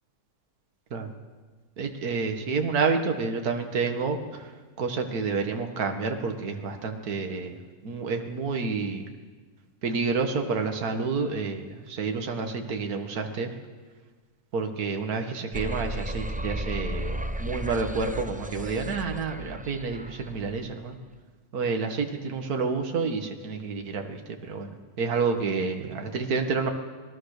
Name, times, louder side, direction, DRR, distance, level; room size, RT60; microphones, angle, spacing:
voice 1, 1.8-4.4 4.8-7.5 7.8-9.0 9.8-13.5 14.5-21.0 21.5-24.2 24.5-24.7 25.0-26.7, right 4 dB, 65° right, 4 dB, 2.1 m, -29 dB
sound 1, 15.5-20.6, right 1 dB, 10° right, 0.4 m, -34 dB
27.0 x 20.0 x 6.6 m, 1.4 s
omnidirectional pair, 1.8 m